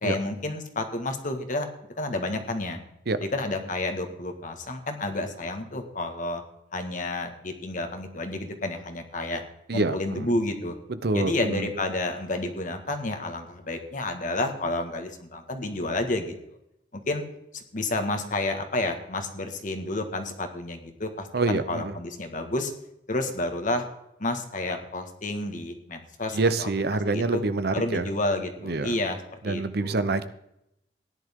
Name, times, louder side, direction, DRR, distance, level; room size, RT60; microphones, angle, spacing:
voice 1, 0.0-1.7 2.0-2.8 3.2-6.4 6.7-9.4 9.7-10.8 11.1-16.6 16.9-17.2 17.5-22.7 23.1-23.8 24.2-26.7 27.1-27.4 27.7-29.2 29.4-30.1, left 2 dB, 50° left, 5 dB, 1.7 m, -30 dB
voice 2, 9.7-10.3 11.0-11.7 21.3-21.9 26.3-28.0 28.6-28.9 29.4-30.3, right 3 dB, 65° right, 13 dB, 0.8 m, -26 dB
16.5 x 10.5 x 3.7 m, 0.82 s
head